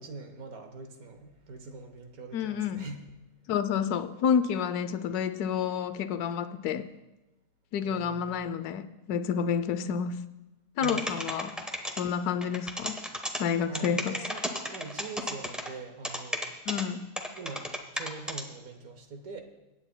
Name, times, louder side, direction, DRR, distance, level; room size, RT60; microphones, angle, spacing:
voice 1, 0.0-3.1 7.8-8.3 10.8-11.4 13.7-16.5 17.4-19.4, right 4 dB, 65° right, 6 dB, 1.4 m, -43 dB
voice 2, 2.3-2.9 3.5-6.9 7.7-10.2 10.8-11.5 12.0-13.0 13.4-14.2 16.7-17.1, left 7 dB, 75° left, 12 dB, 1.1 m, -29 dB
sound 1, 10.8-12.0 12.4-13.4 13.7-15.7 16.0-16.8 17.2-18.4, equal, ahead, 0.7 m, -33 dB
24.0 x 9.7 x 2.2 m, 1.0 s
omnidirectional pair, 1.7 m